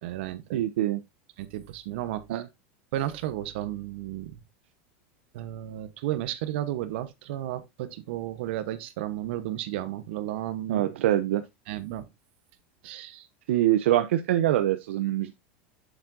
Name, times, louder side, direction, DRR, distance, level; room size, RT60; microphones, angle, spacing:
voice 1, 0.0-0.6 1.4-2.4 2.9-4.4 5.3-11.1 11.7-12.0 12.8-13.3, right 13 dB, 65° right, 1.0 m, -33 dB
voice 2, 0.5-1.0 2.3-2.5 10.7-11.4 13.5-15.3, right 13 dB, 80° right, 0.6 m, -24 dB
7.3 x 7.2 x 2.6 m
supercardioid pair, 150°, 6 cm